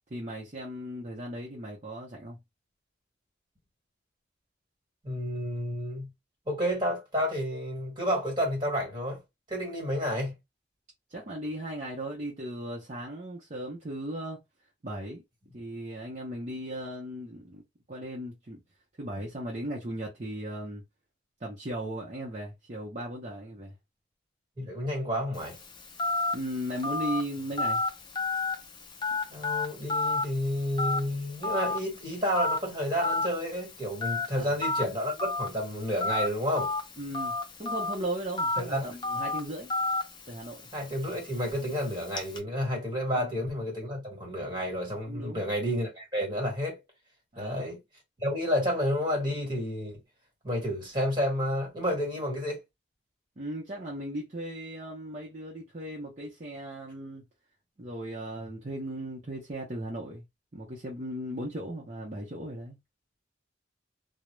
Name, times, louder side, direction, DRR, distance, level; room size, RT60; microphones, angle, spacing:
voice 1, 0.1-2.4 11.1-14.4 14.8-15.2 15.5-17.6 17.9-18.6 19.0-20.8 21.4-23.7 26.3-27.8 34.3-34.6 37.0-39.7 40.3-40.6 43.2-43.4 45.0-45.4 47.3-47.6 53.4-57.2 57.8-60.3 60.5-62.8, right 1 dB, 40° right, 0.6 m, -37 dB
voice 2, 5.0-6.1 6.5-9.2 9.5-10.3 24.6-25.6 29.3-36.7 38.6-38.9 40.7-46.8 47.4-47.8 48.2-50.0 50.4-52.6, equal, 25° right, 1.4 m, -30 dB
Telephone, 25.3-42.4, left 3 dB, 25° left, 0.4 m, -33 dB
2.3 x 2.0 x 3.0 m
head